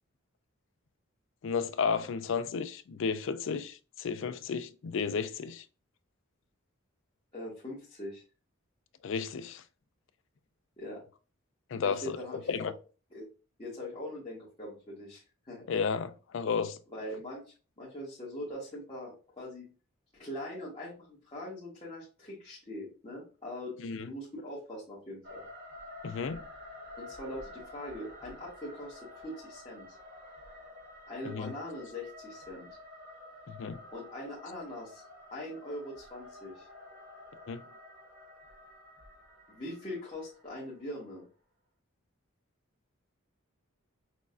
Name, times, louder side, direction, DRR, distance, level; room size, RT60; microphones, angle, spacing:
voice 1, 1.4-5.6 9.0-9.6 11.7-12.2 12.5-12.7 15.7-16.8 23.8-24.1 26.0-26.4 31.3-31.5 33.5-33.8 37.5-37.6, left 5 dB, 60° left, 0.4 m, -33 dB
voice 2, 7.3-8.2 10.8-11.0 11.8-12.7 13.1-13.2 13.6-15.6 16.9-17.4 17.8-19.7 20.1-25.4 27.0-30.0 31.1-32.7 33.9-35.0 35.3-36.7 39.5-41.2, left 1 dB, 25° left, 1.3 m, -42 dB
sound 1, 25.2-41.2, left 1 dB, 55° right, 1.1 m, -50 dB
6.1 x 2.4 x 2.5 m
head